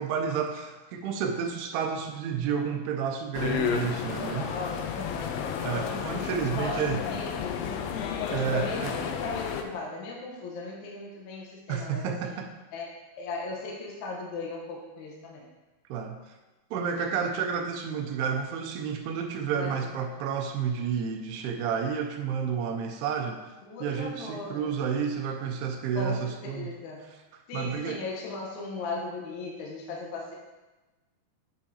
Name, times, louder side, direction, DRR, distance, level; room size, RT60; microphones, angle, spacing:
voice 1, 0.0-4.5 5.6-7.0 8.3-8.9 11.7-12.5 15.9-16.3 16.7-23.4 23.8-26.7 27.5-28.0, right 7 dB, 85° right, 4 dB, 2.6 m, -30 dB
sound 1, 3.3-9.6, left 7 dB, 85° left, 2.0 m, -32 dB
voice 2, 4.2-5.4 5.8-12.4 12.7-15.4 19.5-20.0 23.6-24.7 26.0-27.1 27.5-30.3, left 3 dB, 70° left, -2 dB, 1.9 m, -38 dB
9.5 x 5.5 x 2.8 m, 1.1 s
omnidirectional pair, 4.6 m